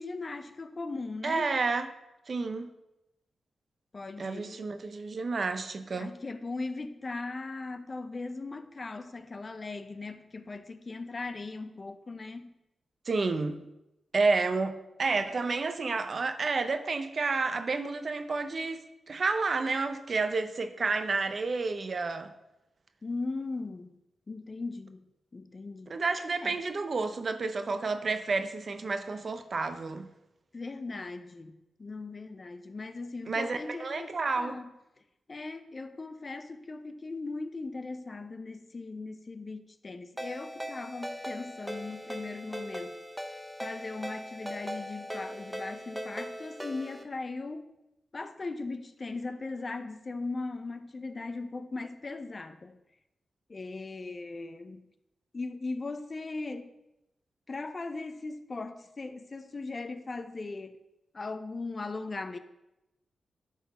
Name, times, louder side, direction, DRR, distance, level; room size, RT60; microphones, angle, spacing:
voice 1, 0.0-1.5 3.9-4.7 6.0-12.5 23.0-23.9 24.3-26.0 26.4-26.5 30.5-34.7 35.3-43.0 43.6-47.7 48.1-52.8 53.5-54.9 55.3-56.7 57.5-60.8 61.1-62.4, left 3 dB, 40° left, 10 dB, 0.6 m, -39 dB
voice 2, 1.2-1.9 2.3-2.7 4.2-6.1 13.1-13.6 14.1-22.3 25.9-30.1 33.3-34.6, right 4 dB, 55° right, 9 dB, 0.7 m, -30 dB
Ringtone, 40.2-47.0, equal, 5° right, 0.8 m, -39 dB
11.5 x 4.0 x 4.2 m, 0.93 s
cardioid pair, 60°, 0 cm